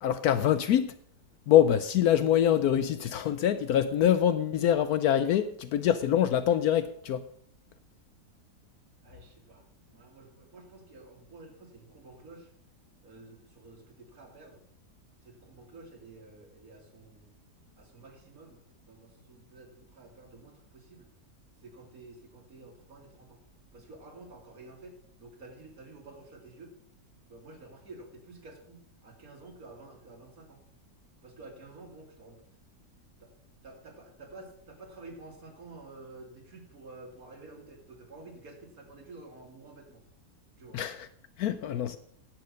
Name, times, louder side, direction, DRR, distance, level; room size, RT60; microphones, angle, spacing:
voice 1, 0.0-1.0 1.5-7.3 40.7-41.1 41.4-42.0, left 10 dB, 70° left, 13 dB, 1.0 m, -25 dB
voice 2, 9.0-12.5 13.0-14.6 15.2-17.3 17.8-21.1 21.6-23.4 23.7-26.8 27.3-30.6 31.2-32.4 33.2-33.3 33.6-40.0 40.6-40.8, right 2 dB, 60° right, 2 dB, 2.5 m, -50 dB
10.5 x 7.7 x 6.3 m, 0.64 s
omnidirectional pair, 1.8 m